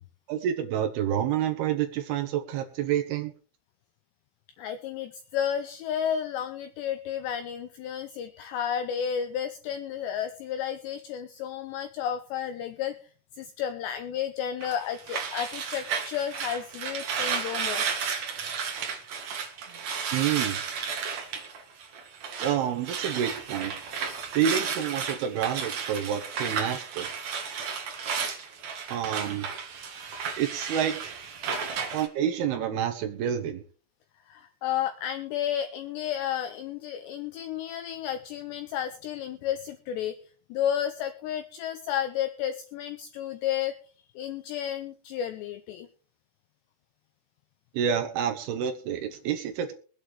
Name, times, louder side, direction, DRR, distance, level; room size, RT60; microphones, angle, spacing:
voice 1, 0.3-3.3 20.1-20.6 22.4-23.8 24.3-27.1 28.9-29.5 30.4-31.2 31.9-33.6 47.7-49.7, right 9 dB, 75° right, 8 dB, 2.4 m, -28 dB
voice 2, 4.6-13.0 13.3-17.8 34.3-40.2 40.5-43.8 44.2-45.9, left 9 dB, 80° left, 9 dB, 2.5 m, -32 dB
sound 1, 14.6-22.6 22.8-32.1, right 6 dB, 55° right, 2.0 m, -33 dB
23.0 x 8.7 x 3.2 m, 0.39 s
omnidirectional pair, 5.8 m